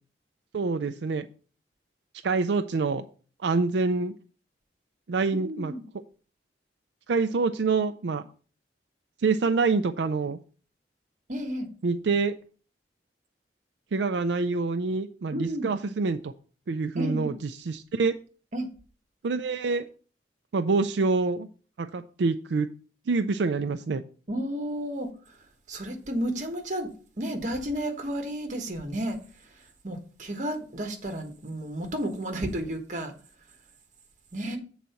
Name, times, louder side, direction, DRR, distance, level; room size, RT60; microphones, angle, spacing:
voice 1, 0.5-1.3 2.2-3.0 3.4-4.1 5.1-5.7 7.1-8.2 9.2-10.4 11.8-12.3 13.9-16.3 16.7-18.1 19.2-19.9 20.5-21.5 21.8-22.7 23.1-24.0, right 4 dB, 80° right, 8 dB, 0.4 m, -26 dB
voice 2, 5.4-5.8 11.3-11.7 15.3-15.7 17.0-17.3 18.5-18.7 24.3-25.4 25.7-26.9 27.2-29.2 29.8-33.1 34.3-34.6, equal, 45° right, 4 dB, 1.3 m, -32 dB
7.6 x 4.1 x 5.7 m, 0.39 s
head